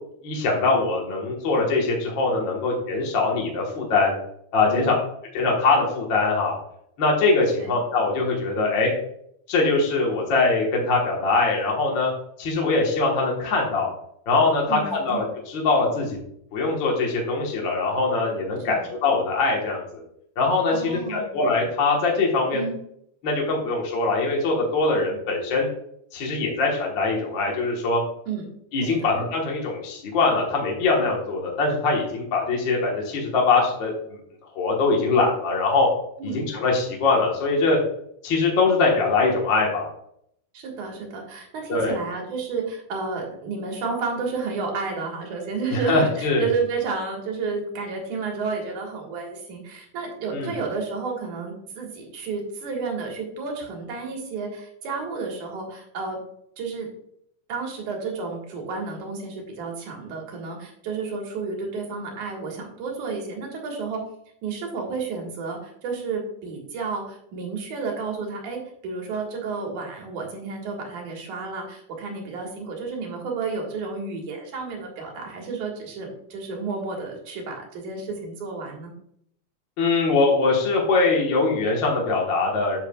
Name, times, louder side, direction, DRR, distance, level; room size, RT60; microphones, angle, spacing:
voice 1, 0.2-4.1 4.5-4.9 5.3-6.5 7.0-8.9 9.5-12.1 12.4-13.9 14.3-16.2 16.5-20.0 20.4-22.6 23.2-25.7 26.1-28.0 28.7-33.9 34.5-35.9 36.3-37.8 38.2-39.8 41.7-42.0 45.7-46.5 50.3-50.5 79.8-82.8, left 3 dB, 50° left, -2 dB, 1.6 m, -22 dB
voice 2, 14.7-15.2 18.7-18.8 20.7-21.3 22.5-22.8 28.3-28.5 28.8-29.1 36.2-36.4 40.5-56.2 56.6-56.9 57.5-64.0 64.4-78.9, right 4 dB, 70° right, 1 dB, 2.9 m, -31 dB
8.2 x 7.4 x 2.3 m, 0.71 s
omnidirectional pair, 3.6 m